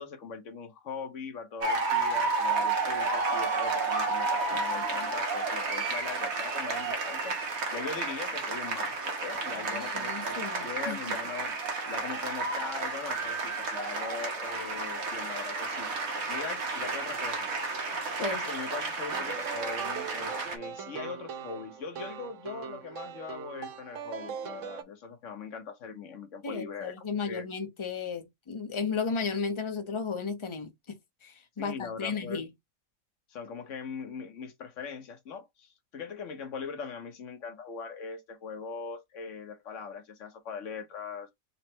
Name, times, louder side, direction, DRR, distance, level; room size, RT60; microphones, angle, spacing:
voice 1, 0.0-11.5 11.9-17.5 18.2-27.0 27.2-27.5 31.6-32.4 33.3-41.3, left 5 dB, 65° left, 1.3 m, -41 dB
sound 1, 1.6-20.6, right 3 dB, 90° right, 1.5 m, -31 dB
voice 2, 9.6-11.0 18.2-18.4 26.4-32.5, left 5 dB, 30° left, 0.5 m, -34 dB
sound 2, 19.1-24.8, right 8 dB, 70° right, 1.0 m, -40 dB
4.1 x 2.2 x 4.3 m
omnidirectional pair, 1.4 m